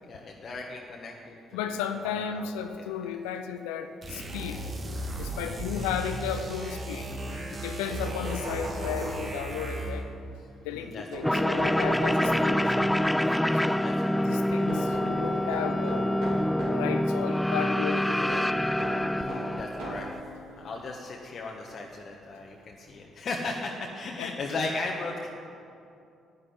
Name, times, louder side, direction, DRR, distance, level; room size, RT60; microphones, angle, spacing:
voice 1, 0.1-2.9 7.1-7.5 10.7-11.4 13.7-14.3 14.7-14.8 19.2-20.1 20.6-25.3, left 3 dB, 45° left, 0 dB, 1.3 m, -37 dB
voice 2, 1.5-4.6 5.1-7.1 7.5-10.1 10.6-12.7 13.6-13.8 14.1-16.0 16.7-18.4 24.2-24.3, left 8 dB, 70° left, 9 dB, 0.7 m, -34 dB
sound 1, 4.0-10.2, right 1 dB, 40° right, 2.2 m, -36 dB
sound 2, 7.9-9.6 11.1-13.2 14.7-16.9 18.3-20.2 21.0-21.1 22.4-22.5 22.9-23.0, right 1 dB, 65° right, 3.6 m, -37 dB
sound 3, 11.2-20.2, left 1 dB, 5° left, 0.3 m, -26 dB
11.5 x 9.7 x 9.3 m, 2.6 s
figure-of-eight pair, 45°, 0 cm